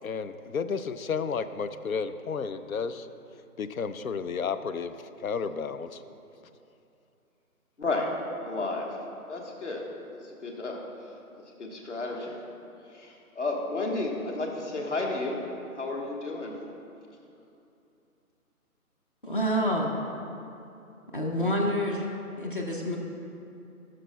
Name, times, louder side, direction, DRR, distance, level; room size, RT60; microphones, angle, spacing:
voice 1, 0.0-3.1 3.6-4.9 5.2-6.0, left 5 dB, 70° left, 11 dB, 0.5 m, -32 dB
voice 2, 7.8-8.1 8.4-8.9 9.3-9.8 10.2-10.8 11.6-12.4 12.9-15.4 15.7-16.6, left 2 dB, 50° left, 0 dB, 1.4 m, -32 dB
voice 3, 19.2-20.0 21.1-22.1 22.4-23.0, equal, 35° left, -1 dB, 0.8 m, -27 dB
17.0 x 6.4 x 2.2 m, 2.7 s
figure-of-eight pair, 170°, 45 cm